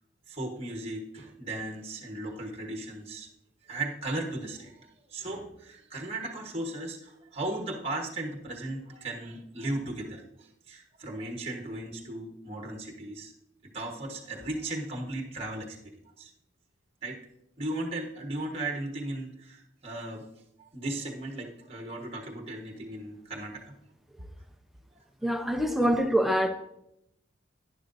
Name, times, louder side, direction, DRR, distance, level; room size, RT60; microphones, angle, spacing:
voice 1, 0.3-3.3 3.6-13.3 13.7-16.3 17.0-17.2 17.6-20.3 20.6-23.7 24.9-25.0 25.7-25.8, right 2 dB, 30° right, 1 dB, 1.2 m, -36 dB
voice 2, 25.2-26.5, equal, ahead, 5 dB, 0.6 m, -25 dB
11.0 x 10.5 x 2.6 m, 0.79 s
head